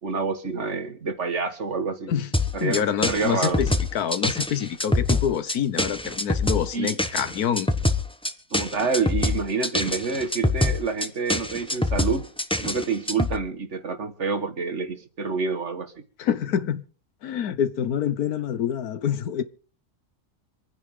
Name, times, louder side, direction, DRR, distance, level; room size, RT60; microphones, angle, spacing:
voice 1, 0.0-2.1 2.5-3.6 6.7-7.0 8.5-12.3 12.6-16.0, right 4 dB, 50° right, 1.8 m, -28 dB
sound 1, 2.3-13.4, left 2 dB, 5° left, 0.9 m, -25 dB
voice 2, 2.6-3.7 3.9-7.7 16.2-16.8 17.2-19.4, left 8 dB, 90° left, 1.5 m, -26 dB
26.0 x 9.8 x 3.8 m
omnidirectional pair, 1.6 m